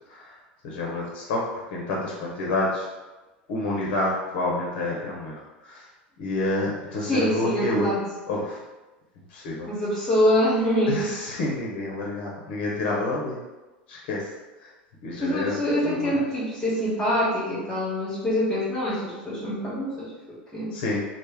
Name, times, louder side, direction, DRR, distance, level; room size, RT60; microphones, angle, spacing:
voice 1, 0.6-1.4 1.7-2.9 3.5-5.3 5.7-5.8 6.2-7.9 8.3-8.6 9.3-9.7 10.9-13.4 13.9-14.3 15.0-15.6 15.8-16.1 20.7-21.0, left 2 dB, 65° left, -2 dB, 0.6 m, -28 dB
voice 2, 7.0-8.1 9.7-11.1 15.2-20.8, equal, 15° left, -8 dB, 1.0 m, -25 dB
3.1 x 2.0 x 3.3 m, 1.1 s
hypercardioid pair, 80°, 6 cm